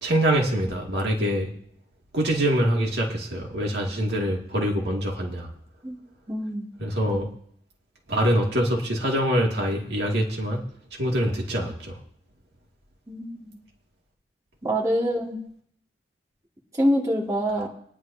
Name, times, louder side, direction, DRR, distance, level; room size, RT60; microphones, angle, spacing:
voice 1, 0.0-1.5 2.1-5.5 6.8-7.3 8.1-10.6 11.0-12.0, equal, 65° right, -1 dB, 2.2 m, -24 dB
voice 2, 6.3-6.7 13.1-13.6 14.6-15.4 16.8-17.7, equal, 20° right, -2 dB, 2.1 m, -25 dB
25.5 x 10.0 x 2.8 m, 0.65 s
head